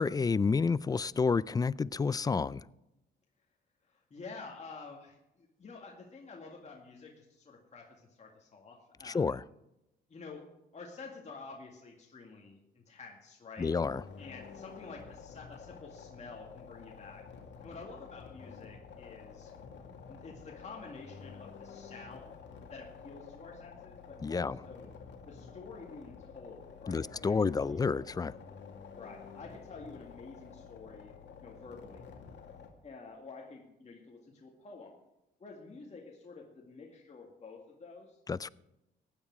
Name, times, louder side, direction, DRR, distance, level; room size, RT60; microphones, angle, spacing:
voice 1, 0.0-2.7 9.0-9.4 13.6-14.0 24.2-24.6 26.9-28.3 38.3-38.5, left 5 dB, 20° left, 0.3 m, -30 dB
voice 2, 3.9-7.9 8.2-9.3 10.1-10.4 10.7-13.7 14.2-17.2 17.6-19.5 19.8-22.4 22.7-24.9 25.3-27.9 28.9-31.1 31.4-32.1 32.8-34.9 35.4-38.2, left 4 dB, 35° left, 2.1 m, -49 dB
sound 1, 13.6-32.7, left 6 dB, 65° left, 2.2 m, -50 dB
15.5 x 9.7 x 4.7 m
cardioid pair, 90°, 20 cm